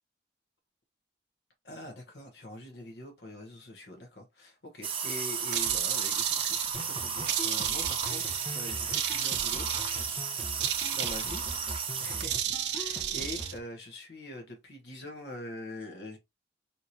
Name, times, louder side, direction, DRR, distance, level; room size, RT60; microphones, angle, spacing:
voice 1, 1.6-9.7 10.9-11.4 11.7-16.2, left 1 dB, 80° left, 1.0 m, -44 dB
sound 1, 4.8-12.2, right 6 dB, 30° right, 0.7 m, -34 dB
sound 2, 5.5-6.8 7.3-8.5 8.9-10.2 10.6-11.6 12.2-13.5, right 11 dB, 85° right, 0.5 m, -32 dB
sound 3, 6.7-13.6, equal, 25° left, 0.8 m, -43 dB
4.5 x 2.8 x 2.7 m
head